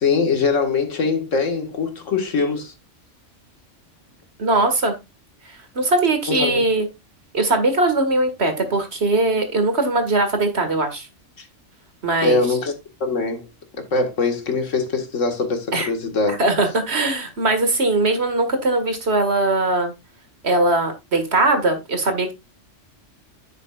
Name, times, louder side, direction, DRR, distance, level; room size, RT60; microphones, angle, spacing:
voice 1, 0.0-2.7 6.3-6.6 11.4-11.5 12.2-12.7 13.0-13.5 13.9-16.4, left 4 dB, 85° left, 2.0 m, -22 dB
voice 2, 4.4-5.0 5.8-6.9 7.3-11.1 12.0-12.4 15.7-15.9 16.3-19.9 20.4-22.3, right 2 dB, 60° right, 2.1 m, -20 dB
10.0 x 7.4 x 2.4 m
omnidirectional pair, 1.3 m